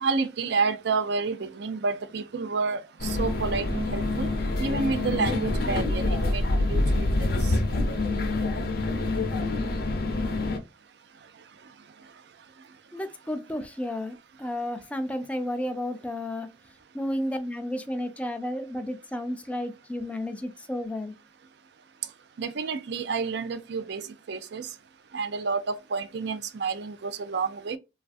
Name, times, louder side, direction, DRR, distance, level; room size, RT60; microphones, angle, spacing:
voice 1, 0.0-4.3 4.6-7.1 7.4-7.5 22.4-24.7 25.1-27.8, right 4 dB, 60° right, 0.4 m, -29 dB
sound 1, 3.0-10.6, left 2 dB, 55° left, 0.6 m, -26 dB
voice 2, 12.9-16.5 16.9-21.1, left 1 dB, 5° left, 0.3 m, -32 dB
3.1 x 2.4 x 2.5 m
head